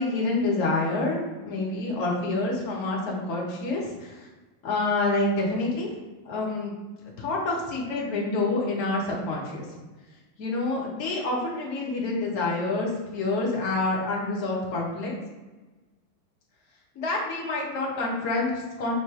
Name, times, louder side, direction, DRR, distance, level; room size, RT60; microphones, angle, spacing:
voice 1, 0.0-4.3 4.6-5.9 6.2-6.7 7.2-9.6 10.4-15.1 16.9-18.9, left 2 dB, 45° left, -2 dB, 1.2 m, -27 dB
3.2 x 2.9 x 4.5 m, 1.2 s
figure-of-eight pair, 90°, 0 cm